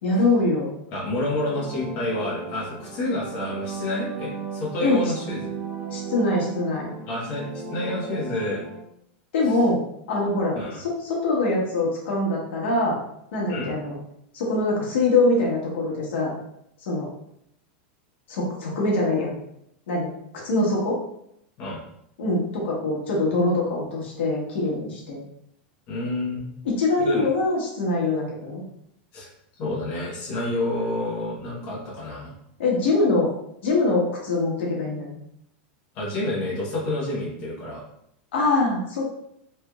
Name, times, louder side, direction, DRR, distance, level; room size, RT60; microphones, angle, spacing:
voice 1, 0.0-0.7 4.8-5.1 5.9-6.9 9.3-9.8 10.1-13.0 13.3-13.9 14.3-16.3 16.8-17.1 18.3-19.3 19.9-21.0 22.2-25.2 26.6-28.6 32.6-33.3 33.6-35.2 38.3-39.1, left 2 dB, 80° left, -3 dB, 1.2 m, -23 dB
voice 2, 0.9-5.4 7.0-8.6 10.5-10.8 13.5-13.7 21.6-21.8 25.9-26.5 27.0-27.3 29.1-29.3 29.6-32.3 35.9-37.8, left 1 dB, 35° left, -6 dB, 1.0 m, -29 dB
sound 1, 0.9-8.8, right 4 dB, 55° right, 0.7 m, -36 dB
3.3 x 3.0 x 2.3 m, 0.74 s
supercardioid pair, 175°, 6 cm